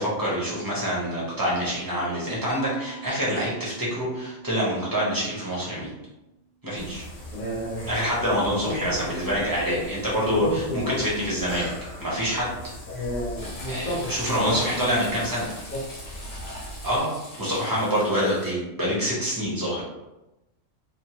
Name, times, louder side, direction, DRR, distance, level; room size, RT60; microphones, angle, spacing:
voice 1, 0.0-5.9 6.6-7.0 7.9-11.7 12.0-12.5 13.7-15.5 16.8-17.1 17.4-19.8, equal, 20° right, -6 dB, 0.6 m, -26 dB
Mallet percussion, 2.5-6.5, right 5 dB, 80° right, 1.3 m, -44 dB
sound 1, 6.7-17.0, equal, 65° left, 1.0 m, -40 dB
voice 2, 7.3-7.9 8.6-9.1 10.3-11.1 12.9-14.9 15.7-15.8, left 1 dB, 45° left, -4 dB, 0.7 m, -31 dB
Frying (food), 13.4-18.5, left 1 dB, 85° left, 1.1 m, -42 dB
2.9 x 2.1 x 2.8 m, 0.97 s
omnidirectional pair, 1.3 m